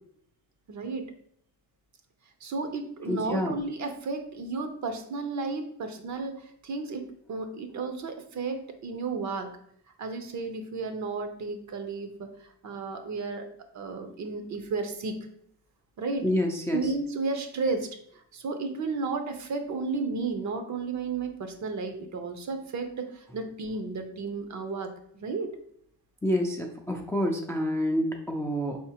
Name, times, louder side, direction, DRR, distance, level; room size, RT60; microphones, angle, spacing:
voice 1, 0.7-1.1 2.4-9.5 10.0-12.3 12.6-13.5 13.7-15.3 16.0-16.3 16.7-17.9 18.3-24.9 25.2-25.5, right 4 dB, 50° right, 7 dB, 0.7 m, -33 dB
voice 2, 3.1-3.5 16.2-16.9 26.2-28.8, equal, 5° left, 1 dB, 0.4 m, -28 dB
4.8 x 3.6 x 2.9 m, 0.68 s
cardioid pair, 130°, 38 cm